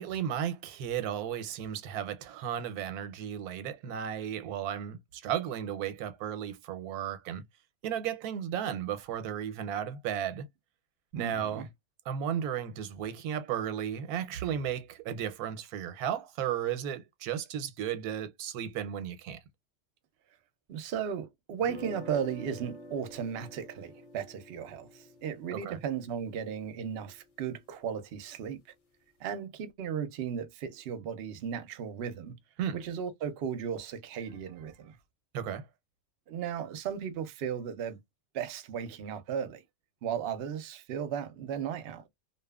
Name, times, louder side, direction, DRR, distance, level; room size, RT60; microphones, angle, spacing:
voice 1, 0.0-7.4 7.8-10.5 11.1-11.7 12.1-19.4 25.5-25.8 32.6-32.8 35.3-35.7, right 9 dB, 90° right, 1.1 m, -34 dB
voice 2, 11.1-11.7 20.7-28.6 29.2-32.3 32.7-35.0 36.3-38.0 38.3-39.6 40.0-42.1, right 8 dB, 60° right, 0.7 m, -35 dB
sound 1, 21.6-27.6, left 1 dB, 40° left, 0.5 m, -49 dB
2.7 x 2.3 x 2.2 m
omnidirectional pair, 1.5 m